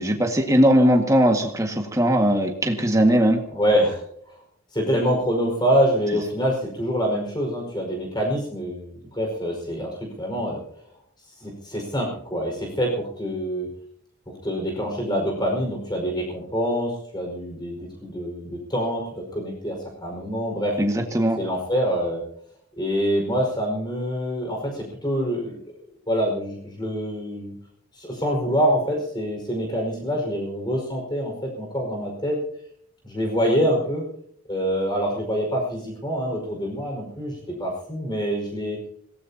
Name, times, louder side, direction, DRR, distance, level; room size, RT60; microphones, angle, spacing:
voice 1, 0.0-3.4 20.8-21.4, equal, 15° right, 3 dB, 1.8 m, -19 dB
voice 2, 3.5-4.0 4.7-10.6 11.4-13.7 14.4-20.8 21.4-22.2 22.8-25.6 26.1-27.6 27.9-32.4 33.0-34.0 34.5-38.8, equal, 20° left, 0 dB, 5.2 m, -25 dB
25.5 x 18.0 x 2.9 m, 0.68 s
head